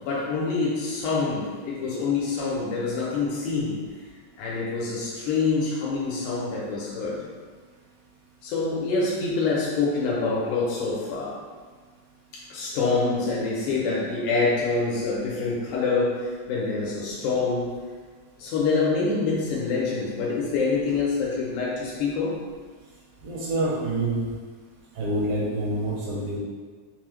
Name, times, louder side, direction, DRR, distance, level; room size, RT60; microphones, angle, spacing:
voice 1, 0.0-3.8 4.4-7.2 8.4-11.4 12.3-17.7 18.4-22.3, left 4 dB, 85° left, -5 dB, 2.2 m, -26 dB
voice 2, 23.2-24.3 25.0-26.4, right 2 dB, 85° right, -5 dB, 2.5 m, -27 dB
5.7 x 2.0 x 3.0 m, 1.5 s
omnidirectional pair, 3.6 m